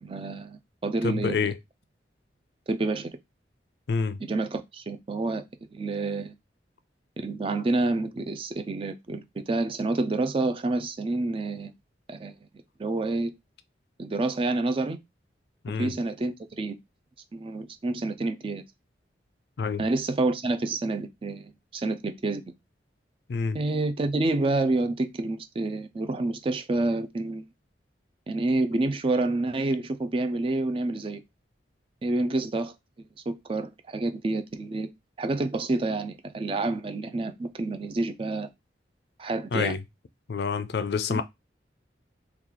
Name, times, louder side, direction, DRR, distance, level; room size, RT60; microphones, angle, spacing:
voice 1, 0.0-1.5 2.7-3.1 4.2-5.4 5.7-6.3 7.2-11.7 12.1-12.4 12.8-13.3 14.0-15.0 15.8-16.8 17.3-18.6 19.8-22.4 23.5-27.4 28.3-31.2 32.0-32.7 33.3-34.9 35.2-38.5 39.2-39.7 41.1-41.2, right 2 dB, 30° right, 0.3 m, -28 dB
voice 2, 1.0-1.6 3.9-4.2 15.6-15.9 19.6-19.9 23.3-23.6 39.5-39.8 40.3-41.2, left 5 dB, 65° left, 0.4 m, -27 dB
3.0 x 2.3 x 3.7 m
head